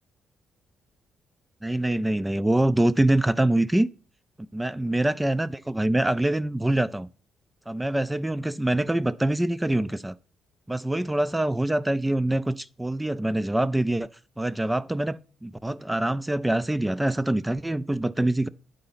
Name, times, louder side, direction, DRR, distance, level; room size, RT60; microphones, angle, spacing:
voice 1, 1.6-3.9 4.5-7.1 7.7-10.1 10.7-14.1 14.4-18.5, right 1 dB, 10° right, 0.3 m, -25 dB
9.0 x 3.9 x 5.6 m
cardioid pair, 90°, 0 cm